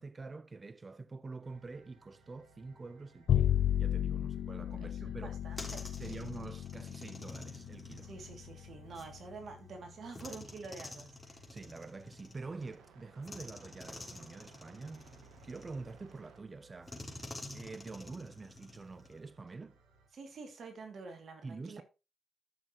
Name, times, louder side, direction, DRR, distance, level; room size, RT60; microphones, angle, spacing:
voice 1, 0.0-5.4 6.0-8.1 11.5-15.1 15.4-17.0 17.5-19.8 21.4-21.8, right 3 dB, 40° right, 0.7 m, -46 dB
sound 1, 1.4-20.1, right 3 dB, 85° right, 1.5 m, -62 dB
Bowed string instrument, 3.3-9.7, left 10 dB, 75° left, 0.5 m, -34 dB
voice 2, 4.9-6.2 8.0-11.4 20.1-21.8, right 4 dB, 65° right, 2.6 m, -48 dB
sound 2, 5.2-9.1 10.1-12.8 13.2-16.2 16.9-19.3, left 2 dB, 25° left, 3.5 m, -49 dB
13.0 x 6.4 x 3.1 m
supercardioid pair, 50°, 0 cm